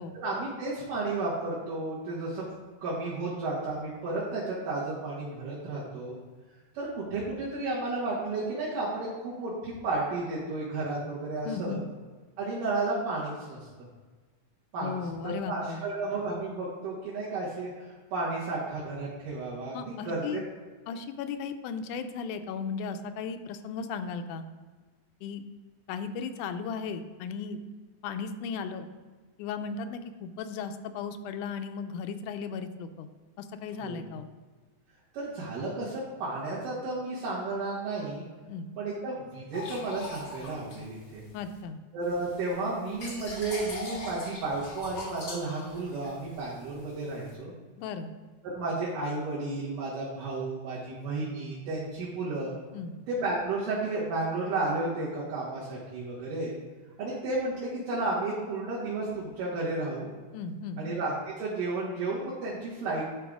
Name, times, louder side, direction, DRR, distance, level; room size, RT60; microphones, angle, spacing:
voice 1, 0.1-2.5 2.8-6.2 6.7-11.8 12.4-13.6 14.7-15.0 15.2-20.4 33.8-34.0 35.1-38.3 38.8-41.2 41.9-47.5 48.4-52.5 53.1-56.5 57.0-60.1 60.8-63.0, right 2 dB, 90° right, -8 dB, 3.2 m, -32 dB
voice 2, 11.5-11.8 14.8-15.8 19.7-20.4 20.9-24.4 25.2-25.4 25.9-27.6 28.0-28.9 29.4-33.1 33.4-34.3 38.5-38.7 41.3-41.8 47.8-48.1 52.7-52.9 60.3-60.8, left 5 dB, 80° left, 8 dB, 2.1 m, -36 dB
sound 1, 39.5-41.6 42.0-47.3, left 2 dB, 50° left, 1.0 m, -41 dB
11.5 x 3.9 x 4.8 m, 1.4 s
omnidirectional pair, 3.6 m